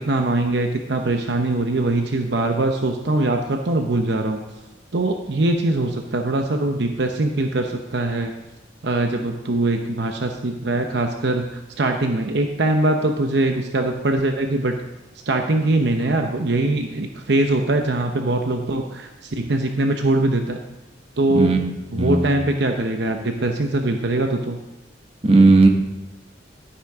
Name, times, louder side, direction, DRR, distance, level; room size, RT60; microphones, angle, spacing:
voice 1, 0.0-4.4 4.9-8.3 8.8-14.8 15.3-20.6 21.2-21.5 21.9-24.6, right 2 dB, 65° right, 4 dB, 0.8 m, -22 dB
voice 2, 25.2-25.7, right 3 dB, 35° right, 3 dB, 1.3 m, -14 dB
12.0 x 9.6 x 3.6 m, 1.0 s
head